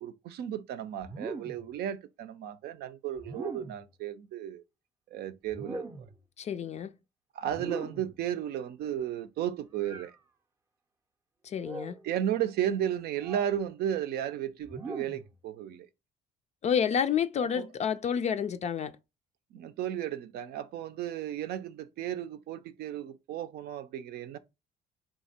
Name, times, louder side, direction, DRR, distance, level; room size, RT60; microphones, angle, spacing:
voice 1, 0.0-4.6 5.1-5.9 7.3-10.1 12.0-15.9 17.5-17.7 19.5-24.4, right 10 dB, 70° right, 0.5 m, -34 dB
sound 1, 1.0-1.7 3.2-3.9 5.5-6.2 7.5-8.2 9.8-10.1 11.6-12.0 13.2-13.6 14.7-15.3, right 3 dB, 15° right, 0.5 m, -41 dB
voice 2, 6.4-6.9 11.4-12.0 16.6-19.0, left 8 dB, 40° left, 0.4 m, -29 dB
3.5 x 2.8 x 4.1 m
cardioid pair, 110°, 17 cm